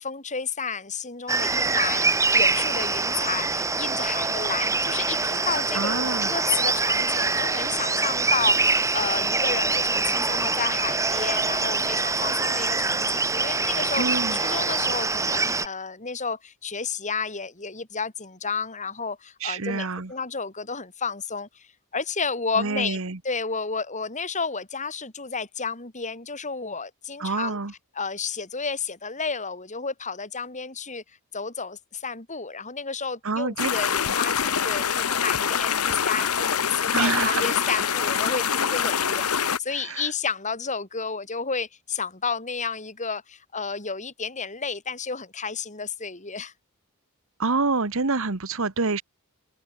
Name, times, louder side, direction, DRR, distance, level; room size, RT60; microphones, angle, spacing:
voice 1, 0.0-2.1 2.3-5.9 6.3-14.1 14.4-23.0 23.2-27.6 27.9-31.0 31.3-46.5, left 5 dB, 35° left, 5.0 m, -31 dB
sound 1, 1.3-15.7, right 3 dB, 15° right, 1.7 m, -24 dB
voice 2, 5.7-6.3 14.0-14.4 19.4-20.1 22.6-23.2 27.2-27.7 33.2-33.7 36.9-37.4 39.7-40.1 47.4-49.0, right 4 dB, 65° right, 1.4 m, -27 dB
sound 2, 33.6-39.6, left 7 dB, 80° left, 1.2 m, -25 dB
head